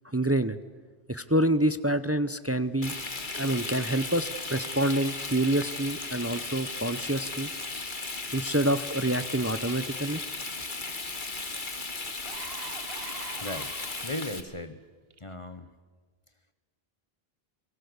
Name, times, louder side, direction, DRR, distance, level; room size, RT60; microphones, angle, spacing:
voice 1, 0.1-0.6 1.1-2.9 3.3-7.5 8.3-10.2, right 1 dB, 15° right, 13 dB, 0.7 m, -27 dB
Frying (food), 2.8-14.4, left 3 dB, 50° left, 1.9 m, -36 dB
sound 1, 11.5-11.6 12.1-14.4 15.1-15.3, right 7 dB, 70° right, 1.3 m, -44 dB
voice 2, 13.4-14.8 15.2-15.7, left 1 dB, 30° left, 11 dB, 1.2 m, -37 dB
29.0 x 23.5 x 8.1 m, 1.5 s
omnidirectional pair, 1.1 m